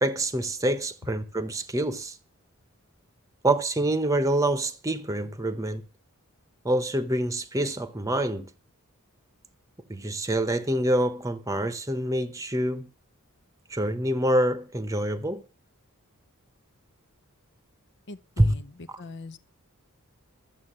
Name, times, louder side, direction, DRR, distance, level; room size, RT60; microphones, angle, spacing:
voice 1, 0.0-2.2 3.4-5.8 6.6-8.5 9.9-12.9 13.7-15.4 18.4-18.5, right 1 dB, 15° right, 0.9 m, -26 dB
voice 2, 18.1-18.7 19.0-19.4, left 3 dB, 55° left, 0.7 m, -41 dB
13.0 x 7.6 x 7.5 m
head